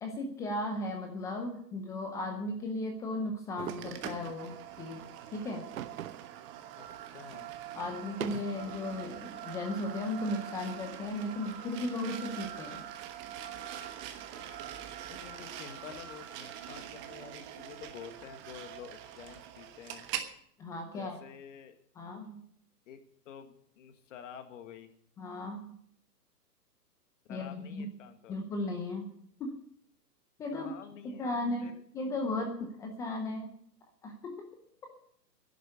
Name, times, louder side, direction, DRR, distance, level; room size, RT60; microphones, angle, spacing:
voice 1, 0.0-5.0 5.3-5.7 7.7-12.8 20.6-21.2 22.0-22.4 25.2-25.7 27.3-27.9 28.3-29.1 29.4-29.5 30.4-30.7 31.0-33.5 34.0-34.5, left 2 dB, 5° left, 3 dB, 0.5 m, -36 dB
sound 1, 3.6-4.1 5.8-6.4 6.8-6.9 8.0-8.7, right 10 dB, 55° right, 0.9 m, -40 dB
sound 2, 3.7-20.3, right 11 dB, 25° right, 1.2 m, -44 dB
voice 2, 7.1-7.5 15.1-20.1 20.9-21.8 22.9-24.9 27.3-28.4 30.5-31.7, left 8 dB, 45° left, 8 dB, 1.8 m, -49 dB
sound 3, 8.5-9.1 9.5-10.0 10.4-11.0 11.4-11.9 12.4-12.9 13.3-13.9 14.3-14.8 15.3-15.8, left 1 dB, 90° left, 5.8 m, -55 dB
11.0 x 8.3 x 9.4 m, 0.66 s
hypercardioid pair, 135°, 50 cm